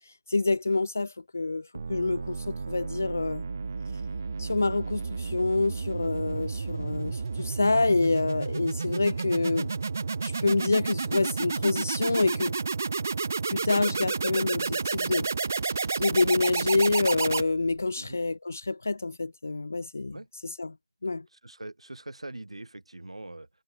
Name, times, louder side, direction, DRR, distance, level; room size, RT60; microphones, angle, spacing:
voice 1, 0.3-3.4 4.4-9.7 10.2-12.6 13.5-15.3 16.0-20.1 20.6-20.7 21.0-21.2, left 3 dB, 20° left, 0.4 m, -27 dB
sound 1, 1.7-17.9, right 4 dB, 20° right, 1.6 m, -31 dB
voice 2, 21.3-23.5, right 2 dB, 60° right, 5.5 m, -42 dB
figure-of-eight pair, 175°, 4 cm